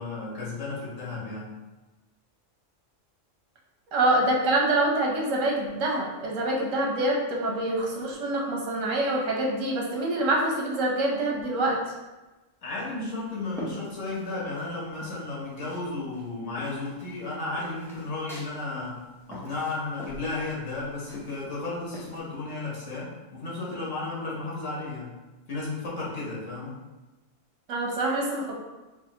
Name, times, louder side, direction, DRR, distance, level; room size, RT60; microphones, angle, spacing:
voice 1, 0.0-1.5 12.6-19.0 19.3-25.1 25.5-26.7, left 3 dB, 70° left, -6 dB, 1.3 m, -33 dB
voice 2, 3.9-11.8 27.7-28.6, right 1 dB, 80° right, -1 dB, 1.2 m, -26 dB
sound 1, 12.8-14.7 15.0-15.9 16.1-22.2, equal, 5° left, 0.4 m, -43 dB
4.6 x 2.5 x 2.8 m, 1.1 s
omnidirectional pair, 1.3 m